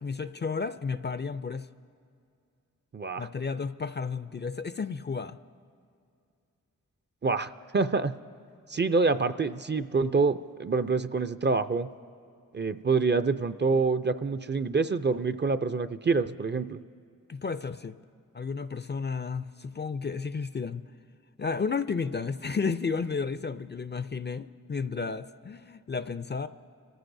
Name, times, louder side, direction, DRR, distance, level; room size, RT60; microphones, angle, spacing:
voice 1, 0.0-1.7 3.2-5.4 17.3-18.0 18.3-20.8 21.4-26.5, left 5 dB, 30° left, 13 dB, 0.4 m, -32 dB
voice 2, 2.9-3.3 7.2-8.1 8.7-11.9 12.5-16.8, right 4 dB, 30° right, 12 dB, 0.4 m, -26 dB
24.5 x 14.5 x 2.6 m, 2.4 s
cardioid pair, 40°, 34 cm